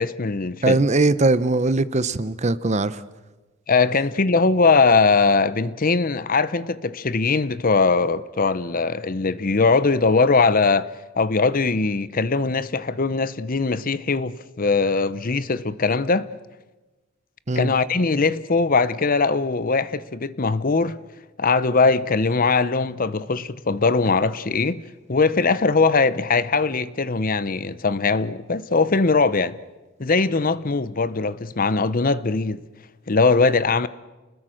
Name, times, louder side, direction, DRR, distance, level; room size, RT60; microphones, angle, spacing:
voice 1, 0.0-0.8 3.7-10.9 11.2-16.3 17.5-21.0 21.4-24.8 25.1-29.5 30.0-32.6 33.1-33.9, left 4 dB, 40° left, 0.7 m, -20 dB
voice 2, 0.6-3.0 17.5-17.7, right 2 dB, 35° right, 0.8 m, -20 dB
29.5 x 20.5 x 6.4 m
head